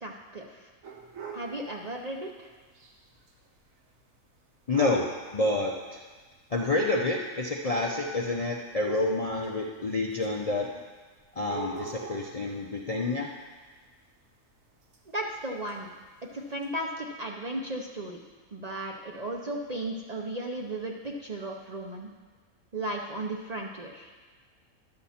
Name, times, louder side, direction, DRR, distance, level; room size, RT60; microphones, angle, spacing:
voice 1, 0.0-0.7 1.3-2.5 15.1-15.9 16.3-18.2 18.5-22.1 22.7-24.1, right 1 dB, 40° right, 0 dB, 0.6 m, -35 dB
sound 1, 0.8-1.6 2.8-2.9 3.3-3.4 4.7-5.2 6.2-6.3 7.3-7.4 7.6-8.2 8.8-9.5 10.2-10.3 11.4-12.4 14.9-15.0 15.7-15.8 16.6-16.7, right 5 dB, 75° right, 1.4 m, -40 dB
voice 2, 4.7-5.1 5.3-6.0 6.5-10.7 11.3-13.3, left 2 dB, 40° left, -1 dB, 0.5 m, -28 dB
11.5 x 7.0 x 4.2 m, 1.4 s
omnidirectional pair, 1.4 m